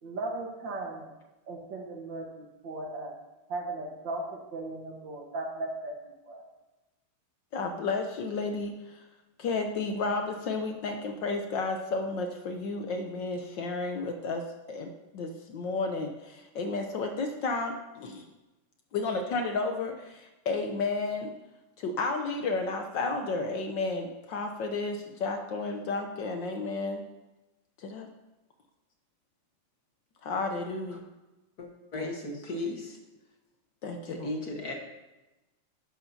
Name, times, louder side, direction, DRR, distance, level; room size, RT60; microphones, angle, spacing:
voice 1, 0.0-1.1 1.5-3.1 3.5-6.4, right 2 dB, 60° right, 1 dB, 1.9 m, -37 dB
voice 2, 7.5-9.0 9.4-18.2 18.9-21.3 21.8-27.0 27.8-28.1 30.2-31.0 31.9-32.1 33.8-34.3, left 3 dB, 65° left, 4 dB, 1.3 m, -32 dB
voice 3, 31.6-33.0 34.2-34.7, left 2 dB, 50° left, 1 dB, 1.7 m, -35 dB
11.5 x 11.0 x 2.8 m, 1.0 s
omnidirectional pair, 2.4 m